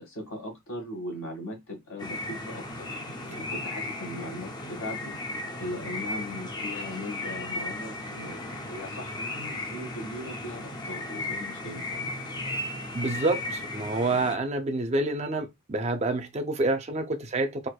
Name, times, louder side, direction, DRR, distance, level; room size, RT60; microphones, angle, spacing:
voice 1, 0.0-3.0 3.2-5.1 5.6-12.2, left 1 dB, 60° left, 1.8 m, -39 dB
sound 1, 2.0-14.4, left 2 dB, 20° left, 0.5 m, -35 dB
voice 2, 12.9-17.7, right 2 dB, 30° right, 0.5 m, -28 dB
4.2 x 2.5 x 2.2 m
head